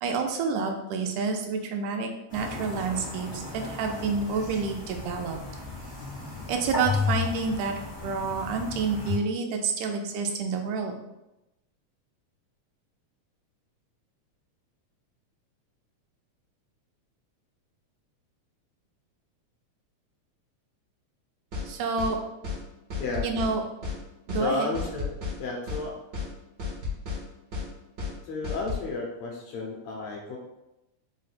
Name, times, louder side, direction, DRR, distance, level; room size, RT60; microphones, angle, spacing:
voice 1, 0.0-5.4 6.5-7.7 8.0-11.0 21.7-22.2 23.2-23.6 24.3-24.7, right 4 dB, 85° right, 3 dB, 2.0 m, -29 dB
sound 1, 2.3-9.2, left 4 dB, 45° left, 0.6 m, -34 dB
sound 2, 21.5-21.7 22.0-22.1 22.4-22.6 22.9-23.5 23.8-24.0 24.3-24.4 24.7-25.4 25.7-25.8 26.1-26.3 26.6-27.2 27.5-27.7 28.0-28.1 28.4-28.8, left 4 dB, 65° right, 0.9 m, -32 dB
voice 2, 24.3-25.1 25.4-26.0 28.2-30.4, left 3 dB, 75° left, -1 dB, 1.6 m, -32 dB
4.8 x 2.1 x 4.0 m, 0.93 s
omnidirectional pair, 3.5 m